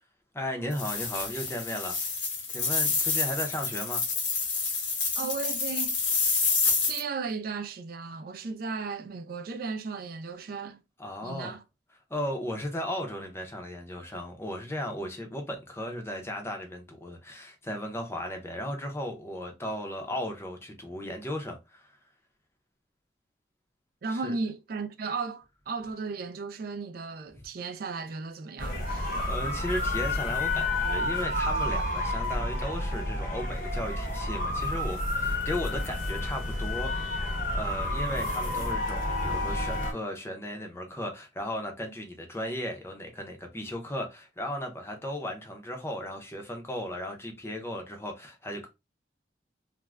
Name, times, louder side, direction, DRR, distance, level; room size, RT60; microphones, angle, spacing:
voice 1, 0.3-2.1 2.5-4.0 11.0-11.5 12.1-21.9 24.1-24.4 29.1-37.1 37.5-48.7, left 1 dB, 15° left, 0.5 m, -36 dB
sound 1, 0.7-7.0, left 4 dB, 80° left, 0.9 m, -28 dB
voice 2, 5.2-6.1 6.9-10.8 11.2-11.6 24.0-29.3, right 4 dB, 55° right, 0.4 m, -35 dB
sound 2, 28.6-39.9, left 1 dB, 45° left, 0.7 m, -30 dB
2.4 x 2.1 x 3.2 m
head